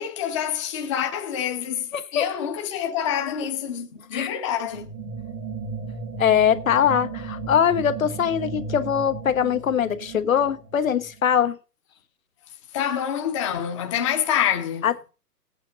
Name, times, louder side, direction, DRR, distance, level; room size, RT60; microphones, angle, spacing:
voice 1, 0.0-4.9 12.7-14.9, left 9 dB, 20° left, 1.0 m, -27 dB
voice 2, 1.9-2.2 4.1-4.3 6.2-11.6 14.8-15.1, left 8 dB, 55° left, 1.2 m, -22 dB
sound 1, 4.7-11.5, right 4 dB, 5° right, 0.6 m, -35 dB
17.5 x 8.6 x 3.9 m
hypercardioid pair, 160°, 48 cm